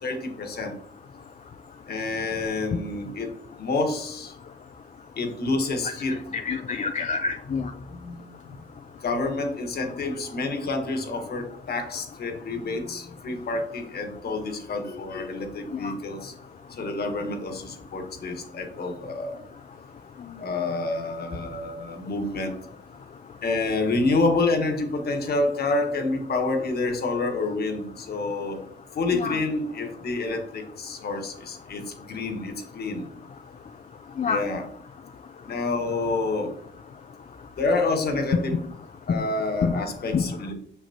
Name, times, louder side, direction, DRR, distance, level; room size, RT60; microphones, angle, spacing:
voice 1, 0.0-0.7 1.9-3.3 3.6-4.3 5.2-6.2 7.9-8.2 8.5-8.6 9.0-16.3 16.7-19.3 20.4-22.6 23.4-28.6 28.9-33.1 34.2-34.6 35.4-36.5 37.6-38.6 39.1-40.5, left 3 dB, 55° left, 5 dB, 1.4 m, -28 dB
voice 2, 6.5-7.7 15.8-15.9 29.1-29.4 34.2-34.4 39.6-39.8 40.1-40.2, left 5 dB, 40° left, 6 dB, 0.5 m, -26 dB
6.3 x 6.0 x 2.8 m, 0.67 s
cardioid pair, 90°, 20 cm